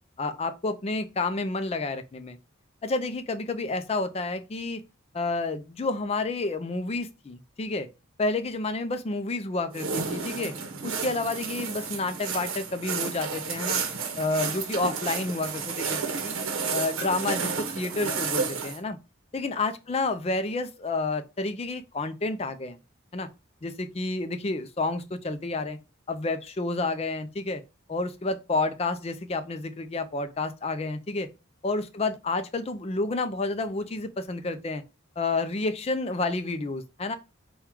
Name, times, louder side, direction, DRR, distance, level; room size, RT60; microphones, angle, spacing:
voice 1, 0.2-2.4 2.8-4.8 5.1-7.9 8.2-10.5 10.8-13.8 14.2-16.4 16.7-19.0 19.3-22.8 23.1-23.3 23.6-25.8 26.1-27.6 27.9-31.3 31.6-34.8 35.2-37.2, left 3 dB, 30° left, 0.4 m, -30 dB
sound 1, 9.7-18.8, right 5 dB, 90° right, 0.7 m, -31 dB
3.6 x 2.3 x 4.4 m
head